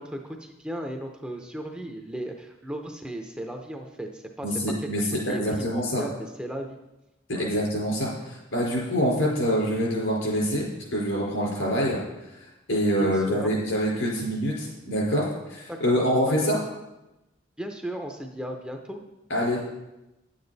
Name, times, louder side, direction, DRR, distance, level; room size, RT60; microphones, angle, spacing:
voice 1, 0.0-4.5 4.8-6.8 7.3-7.5 12.7-13.5 15.7-16.6 17.6-19.0, right 1 dB, 5° right, 3 dB, 0.6 m, -36 dB
voice 2, 4.4-5.0 5.4-6.0 7.4-12.0 12.7-16.6 19.3-19.8, equal, 85° left, -3 dB, 4.3 m, -25 dB
10.0 x 8.7 x 4.1 m, 0.98 s
head